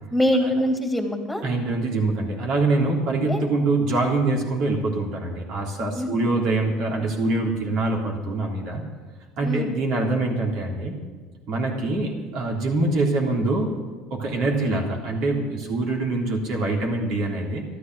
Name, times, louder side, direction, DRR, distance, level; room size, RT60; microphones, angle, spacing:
voice 1, 0.1-1.4 3.2-3.4 5.9-6.3 9.4-9.7, left 1 dB, ahead, 3 dB, 3.1 m, -24 dB
voice 2, 1.4-8.8 9.4-10.9 11.5-13.7 14.1-17.7, right 2 dB, 60° right, 0 dB, 3.5 m, -24 dB
13.0 x 12.5 x 6.3 m, 1.5 s
hypercardioid pair, 75°, 0 cm